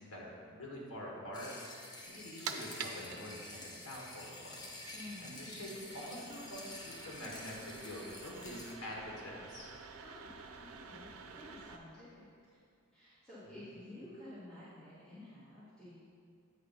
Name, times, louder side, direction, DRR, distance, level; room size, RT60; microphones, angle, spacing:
voice 1, 0.0-1.5 2.0-4.6 5.2-9.7 13.4-13.6, left 1 dB, 85° left, -3 dB, 1.6 m, -46 dB
sound 1, 1.3-8.7, left 2 dB, 20° left, 0.8 m, -49 dB
sound 2, 2.1-11.8, right 5 dB, 80° right, 0.5 m, -49 dB
voice 2, 4.9-5.3 9.9-12.6 12.9-16.0, left 1 dB, 5° left, -15 dB, 1.8 m, -52 dB
8.6 x 4.1 x 5.6 m, 2.3 s
head